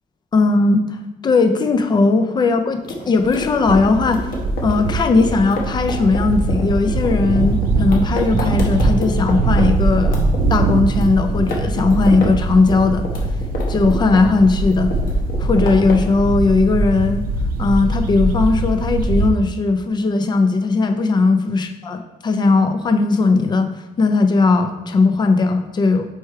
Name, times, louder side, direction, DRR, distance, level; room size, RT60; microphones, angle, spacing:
voice 1, 0.3-0.8 1.2-4.3 4.6-10.2 10.5-13.1 13.7-14.9 15.4-17.2 17.6-23.7 24.0-26.1, left 3 dB, 30° left, 8 dB, 0.5 m, -17 dB
sound 1, 2.8-9.7 10.0-11.1 11.3-12.3 12.6-14.4 14.7-16.1, left 3 dB, 70° left, 1.2 m, -29 dB
sound 2, 3.2-19.3, right 3 dB, 75° right, 0.5 m, -21 dB
4.7 x 4.3 x 4.7 m, 1.0 s
cardioid pair, 155°, 15 cm